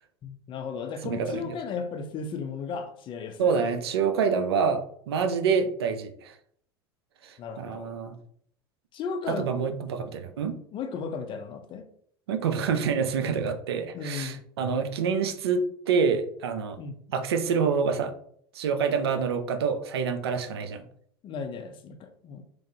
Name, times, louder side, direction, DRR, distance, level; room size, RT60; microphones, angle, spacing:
voice 1, 0.2-3.5 7.4-7.9 8.9-9.5 10.0-10.1 10.7-11.9 13.9-14.4 16.8-17.0 21.2-22.4, left 5 dB, 40° left, 7 dB, 0.5 m, -35 dB
voice 2, 1.0-1.5 3.4-6.3 7.2-8.2 9.3-10.6 12.3-16.8 17.1-18.1 18.5-20.8, right 6 dB, 85° right, 8 dB, 0.4 m, -27 dB
3.1 x 2.5 x 2.7 m, 0.63 s
hypercardioid pair, 85°, 13 cm